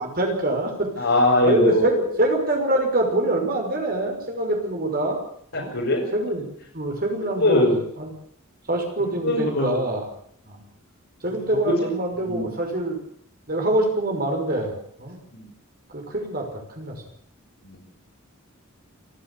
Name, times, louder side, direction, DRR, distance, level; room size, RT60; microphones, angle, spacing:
voice 1, 0.0-0.9 1.4-5.2 5.5-5.7 6.1-6.5 6.7-7.7 8.0-8.1 8.7-10.0 10.5-10.6 11.2-13.0 13.5-15.2 15.9-17.0, right 1 dB, 45° right, 2 dB, 5.7 m, -25 dB
voice 2, 1.0-2.1 5.5-6.0 7.4-7.8 9.2-9.8 11.7-11.8 12.1-12.5 15.3-15.5 17.6-17.8, left 1 dB, 65° left, -5 dB, 5.6 m, -21 dB
28.5 x 11.5 x 8.3 m, 0.63 s
head